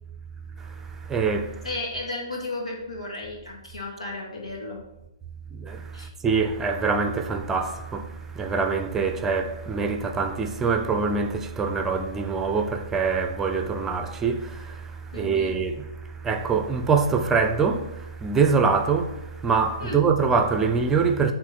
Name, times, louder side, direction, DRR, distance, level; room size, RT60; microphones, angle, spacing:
voice 1, 0.6-1.7 5.5-21.3, right 5 dB, 10° right, 0.6 m, -25 dB
voice 2, 1.6-4.8 5.9-6.1 15.1-15.5 19.8-20.0, left 2 dB, 90° left, 2.4 m, -34 dB
7.4 x 3.7 x 4.3 m
hypercardioid pair, 135°, 3 cm